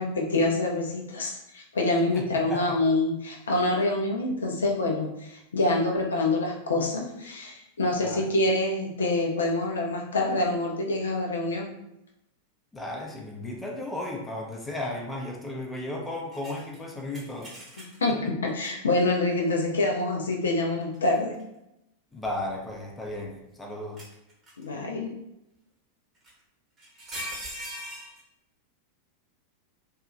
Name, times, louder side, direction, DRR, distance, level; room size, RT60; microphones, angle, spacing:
voice 1, 0.0-11.7 18.0-21.4 24.6-25.1, left 2 dB, 70° left, 0 dB, 0.4 m, -26 dB
voice 2, 2.1-2.8 8.0-8.3 12.7-17.5 22.1-24.0, left 1 dB, 10° left, 0 dB, 0.5 m, -35 dB
sound 1, 16.3-18.1 18.6-18.7 20.8-21.4 22.2-23.3 24.0-24.7 26.2-26.3 26.8-28.2, equal, 25° right, 0.9 m, -40 dB
2.7 x 2.3 x 2.4 m, 0.86 s
figure-of-eight pair, 90°, 0 cm